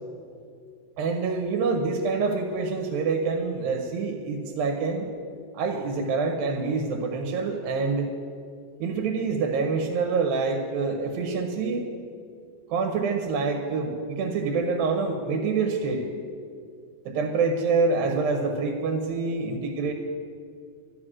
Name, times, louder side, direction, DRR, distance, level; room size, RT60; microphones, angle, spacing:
voice 1, 1.0-5.1 5.5-8.1 8.8-11.9 12.7-16.1 17.1-19.9, right 4 dB, 85° right, 4 dB, 2.8 m, -26 dB
12.5 x 10.5 x 6.2 m, 2.3 s
omnidirectional pair, 4.1 m